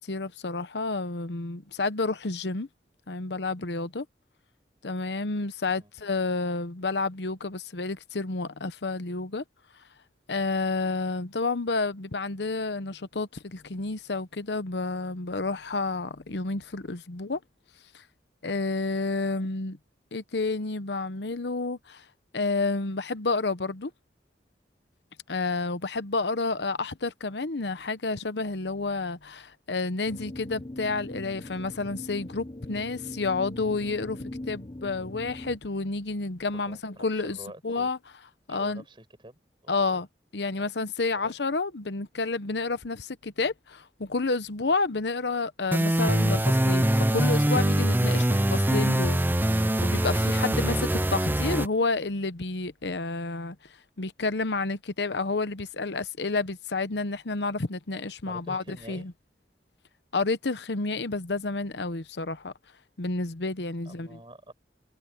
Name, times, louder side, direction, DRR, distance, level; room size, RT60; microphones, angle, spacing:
voice 1, 0.1-2.7 3.1-4.0 4.8-9.4 10.3-17.4 17.9-18.0 18.4-19.8 20.1-22.0 22.3-23.9 25.3-34.2 34.5-37.4 37.6-38.0 38.5-38.8 39.7-40.1 40.3-49.2 49.6-53.6 54.0-59.1 60.1-62.5 63.0-64.2, left 3 dB, 75° left, 0.9 m, -30 dB
sound 1, 30.0-35.6, left 1 dB, 30° left, 1.0 m, -41 dB
voice 2, 36.5-37.9 38.5-40.0 40.6-40.7 41.1-41.3 48.1-48.3 58.2-59.1 63.8-64.5, right 1 dB, 25° right, 6.7 m, -47 dB
sound 2, 45.7-51.7, right 1 dB, 10° right, 0.6 m, -23 dB
head